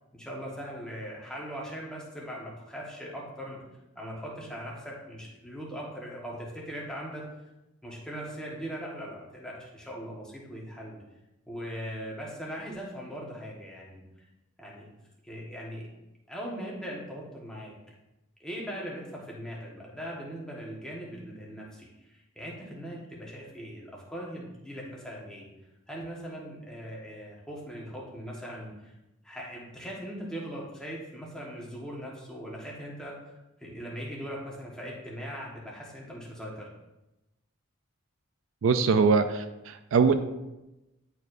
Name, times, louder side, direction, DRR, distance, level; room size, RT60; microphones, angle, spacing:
voice 1, 0.1-3.6 3.9-7.2 7.8-11.0 11.5-14.0 14.6-14.9 15.2-15.9 16.3-17.7 18.4-25.5 25.9-28.9 29.2-33.2 33.6-36.7, equal, 5° left, -4 dB, 1.3 m, -40 dB
voice 2, 38.6-40.1, right 5 dB, 65° right, 9 dB, 0.4 m, -23 dB
10.5 x 4.6 x 2.6 m, 0.99 s
head